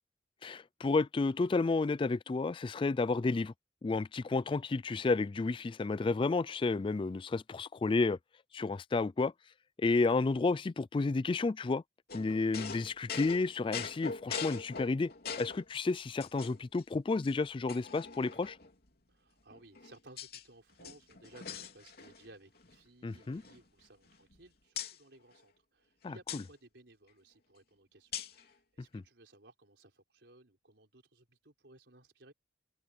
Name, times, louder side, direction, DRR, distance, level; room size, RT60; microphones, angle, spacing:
voice 1, 0.4-3.5 3.8-8.2 8.5-9.3 9.8-11.8 12.1-15.1 15.4-18.6 23.0-23.4 26.0-26.4 28.9-29.0, left 3 dB, 30° left, 0.3 m, -31 dB
sound 1, 12.1-15.7 16.2-16.8 17.2-17.3 17.7-18.7 19.5-20.4 20.7-22.3 22.6-22.8 23.1-24.4 24.8-25.0 26.3-26.5 28.1-28.5, left 6 dB, 60° left, 3.2 m, -42 dB
voice 2, 19.1-32.3, right 2 dB, 80° right, 4.5 m, -59 dB
head